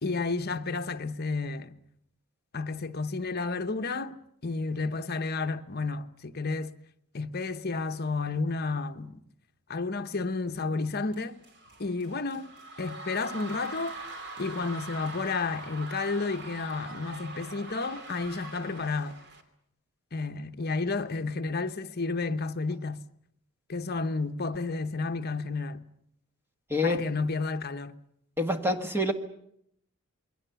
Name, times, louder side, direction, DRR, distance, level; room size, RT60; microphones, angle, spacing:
voice 1, 0.0-1.8 2.5-4.1 4.4-6.7 7.1-9.2 9.7-11.4 11.8-12.5 12.8-13.9 14.4-19.2 20.1-23.0 23.7-25.8 26.8-28.0, left 3 dB, 45° left, 1.0 m, -31 dB
sound 1, 11.1-19.4, right 2 dB, 50° right, 2.8 m, -43 dB
voice 2, 26.7-27.0 28.4-29.1, left 1 dB, 10° right, 1.7 m, -26 dB
27.5 x 22.0 x 7.0 m
head